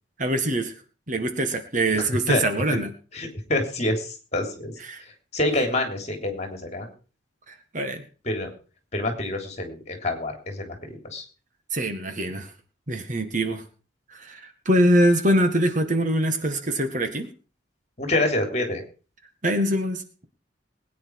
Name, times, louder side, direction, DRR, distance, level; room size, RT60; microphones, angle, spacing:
voice 1, 0.2-0.7 1.1-2.9 4.8-5.0 7.5-8.0 11.7-12.5 12.9-13.6 14.1-17.3 19.4-20.0, right 1 dB, 40° right, 7 dB, 1.8 m, -23 dB
voice 2, 1.9-2.4 3.1-4.7 5.3-6.9 8.2-8.5 8.9-11.2 18.0-18.8, left 2 dB, 35° left, 4 dB, 3.4 m, -27 dB
20.5 x 9.5 x 4.8 m, 0.37 s
head